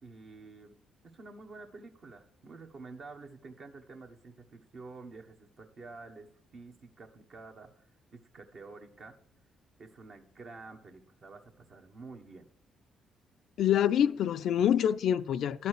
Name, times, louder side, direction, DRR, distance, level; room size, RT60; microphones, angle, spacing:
voice 1, 0.0-0.8 1.1-7.7 8.1-9.1 9.8-12.5, right 3 dB, 60° right, 1.3 m, -49 dB
voice 2, 13.6-15.7, left 10 dB, 70° left, 0.3 m, -26 dB
11.0 x 4.2 x 6.4 m
hypercardioid pair, 50°, 0 cm